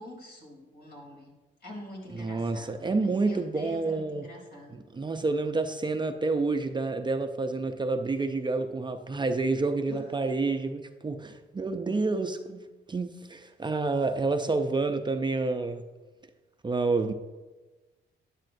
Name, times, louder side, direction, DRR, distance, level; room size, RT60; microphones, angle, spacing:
voice 1, 0.0-1.3 1.6-4.8 9.9-10.0, left 1 dB, 55° left, 0 dB, 3.5 m, -45 dB
voice 2, 2.1-4.3 4.9-15.8 16.6-17.1, right 3 dB, 25° right, 6 dB, 0.6 m, -29 dB
12.0 x 9.9 x 2.7 m, 1.2 s
cardioid pair, 90°, 20 cm